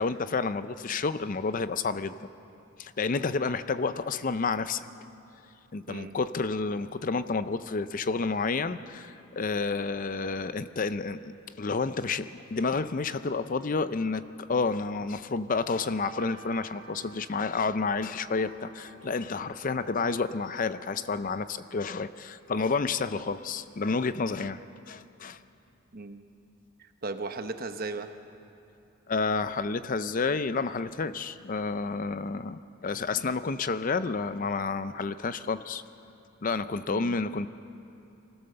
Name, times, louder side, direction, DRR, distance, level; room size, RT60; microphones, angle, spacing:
voice 1, 0.0-2.3 2.8-4.9 5.7-11.3 11.6-24.6 24.9-25.4 29.1-35.8 36.4-37.5, left 4 dB, 35° left, 12 dB, 0.5 m, -30 dB
sound 1, 15.8-22.6, right 4 dB, 60° right, 1.6 m, -53 dB
voice 2, 25.9-26.2 26.8-28.1 36.9-37.2, right 3 dB, 40° right, 8 dB, 0.9 m, -37 dB
24.0 x 16.5 x 6.8 m, 2.8 s
head